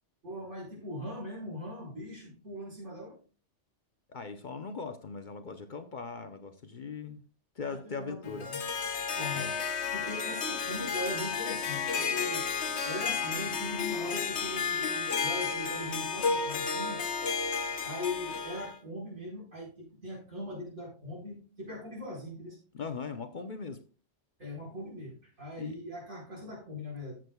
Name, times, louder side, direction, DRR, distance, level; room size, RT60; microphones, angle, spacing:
voice 1, 0.2-3.2 7.6-8.6 9.1-9.6 9.9-12.5 12.8-17.1 17.8-22.6 24.4-27.2, left 1 dB, 75° right, -4 dB, 5.1 m, -40 dB
voice 2, 4.1-7.2 7.6-8.5 9.3-9.6 22.7-23.8 25.6-25.8, left 5 dB, 45° left, 9 dB, 0.8 m, -40 dB
Harp, 8.2-18.8, left 5 dB, 70° left, 1.2 m, -32 dB
14.5 x 7.6 x 2.3 m, 0.37 s
omnidirectional pair, 1.2 m